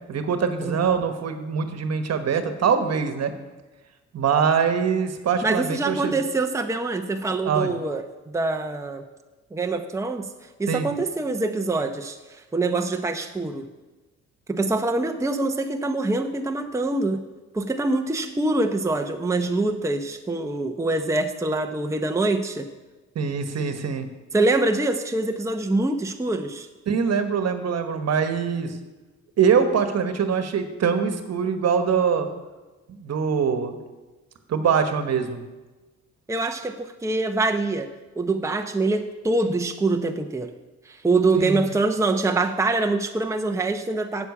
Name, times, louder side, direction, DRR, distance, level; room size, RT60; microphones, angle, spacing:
voice 1, 0.1-3.3 4.1-6.1 7.4-7.7 10.7-10.9 23.1-24.1 26.9-28.7 29.4-32.3 33.0-33.8 34.5-35.4 41.3-41.6, right 6 dB, 55° right, 8 dB, 1.3 m, -23 dB
voice 2, 5.4-9.0 9.5-10.3 10.6-13.7 14.5-17.2 17.5-22.7 24.3-26.7 36.3-37.9 38.2-40.5 40.9-44.3, right 2 dB, 10° right, 5 dB, 0.8 m, -24 dB
8.0 x 7.4 x 8.5 m, 1.2 s
cardioid pair, 90°, 30 cm